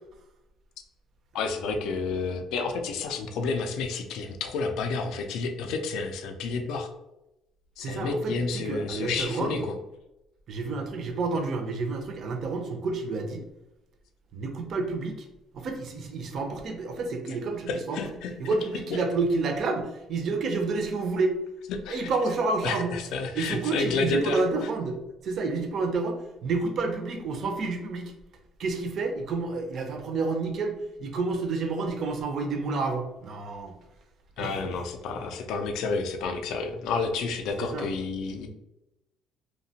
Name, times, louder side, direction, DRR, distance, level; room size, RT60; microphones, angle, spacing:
voice 1, 1.3-6.9 7.8-9.7 17.7-18.3 18.9-19.0 21.7-22.1 22.6-24.4 34.4-38.5, left 4 dB, 65° left, 5 dB, 0.3 m, -30 dB
voice 2, 7.8-9.7 10.5-13.4 14.3-15.3 15.5-18.0 18.4-21.3 21.9-22.9 23.3-25.0 25.2-26.2 26.4-28.1 28.6-33.8 34.4-34.5 37.6-37.9, right 3 dB, 40° right, 4 dB, 0.4 m, -29 dB
2.8 x 2.1 x 2.7 m, 0.92 s
cardioid pair, 170°, 0 cm